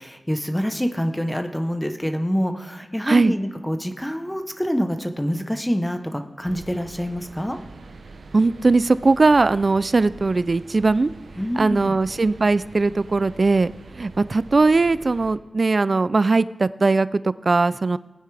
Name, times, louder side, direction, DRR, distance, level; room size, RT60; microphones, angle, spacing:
voice 1, 0.0-7.6 11.4-11.9, equal, 5° left, 6 dB, 0.8 m, -26 dB
sound 1, 6.4-15.4, right 3 dB, 85° right, 0.7 m, -43 dB
voice 2, 8.3-11.1 11.6-18.0, right 3 dB, 45° right, 17 dB, 0.3 m, -19 dB
19.5 x 9.1 x 3.4 m, 1.2 s
wide cardioid pair, 80°, 0 cm